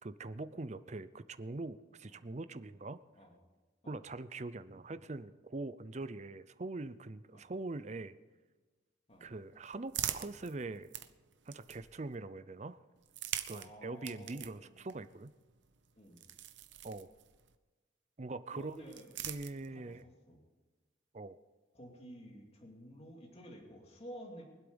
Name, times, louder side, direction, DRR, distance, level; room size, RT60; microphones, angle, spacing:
voice 1, 0.0-3.0 3.9-8.1 9.2-10.9 11.5-12.8 13.5-15.3 16.8-17.1 18.2-19.0 19.3-20.0 21.1-21.4, right 2 dB, 35° right, 14 dB, 0.6 m, -43 dB
sound 1, 9.1-12.1 13.0-17.6 18.5-20.0, right 11 dB, 70° right, 0.8 m, -45 dB
voice 2, 13.5-14.8 16.0-16.2 18.5-19.1 19.7-20.4 21.7-24.4, equal, 30° left, -1 dB, 2.7 m, -52 dB
24.0 x 8.2 x 5.3 m, 1.3 s
head